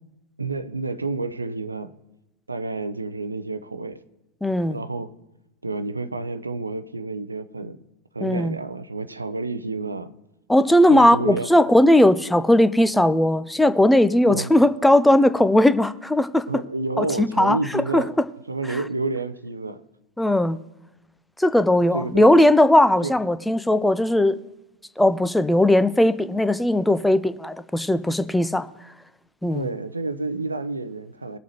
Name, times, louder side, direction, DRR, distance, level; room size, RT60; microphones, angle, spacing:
voice 1, 0.4-1.9 2.5-4.0 4.6-5.1 5.6-7.8 8.1-10.1 10.9-11.5 14.2-14.5 16.5-18.1 18.5-19.8 21.9-22.3 23.0-23.1 29.5-31.4, right 3 dB, 80° right, 0.6 m, -29 dB
voice 2, 4.4-4.8 8.2-8.6 10.5-16.5 17.0-17.6 17.9-18.0 20.2-20.6 21.4-24.4 25.0-28.7 29.4-29.7, left 1 dB, 5° left, 0.5 m, -18 dB
21.0 x 7.2 x 2.9 m
figure-of-eight pair, 90°, 0 cm